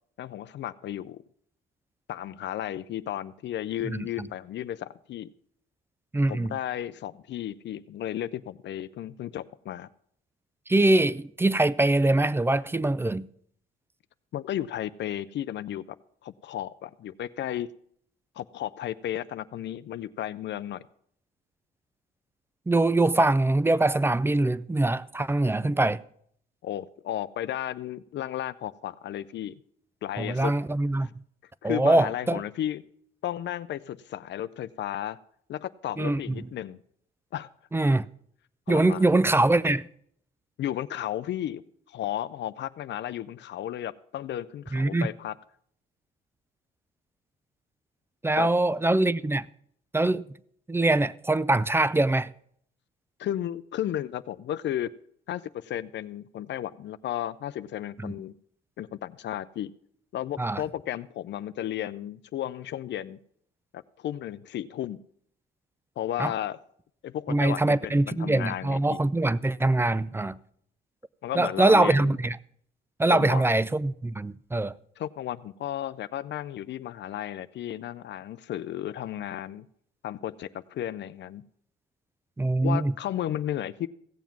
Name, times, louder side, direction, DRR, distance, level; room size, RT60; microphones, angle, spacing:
voice 1, 0.2-1.2 2.1-5.3 6.3-9.9 14.3-15.8 16.2-17.7 18.4-20.9 26.6-29.5 30.0-30.5 31.0-31.1 31.6-32.8 33.2-35.2 35.5-36.8 37.3-37.5 38.7-39.1 40.6-41.6 41.9-45.3 48.4-48.5 53.2-54.9 55.3-58.3 58.8-59.7 60.1-63.2 63.7-65.0 66.0-66.6 67.0-69.0 71.2-72.2 73.1-73.4 75.0-79.7 80.0-81.4 82.6-83.9, left 11 dB, 65° left, 0.5 m, -34 dB
voice 2, 6.1-6.5 10.7-13.3 22.7-26.0 30.2-31.1 31.6-32.4 36.0-36.5 37.7-38.1 38.7-39.9 44.7-45.1 48.2-49.5 49.9-50.2 50.7-52.3 58.0-58.1 60.4-60.6 66.2-66.3 67.3-70.4 71.4-72.4 73.0-74.7 82.4-82.9, right 2 dB, 10° right, 0.4 m, -23 dB
16.0 x 7.2 x 5.9 m
cardioid pair, 90°, 20 cm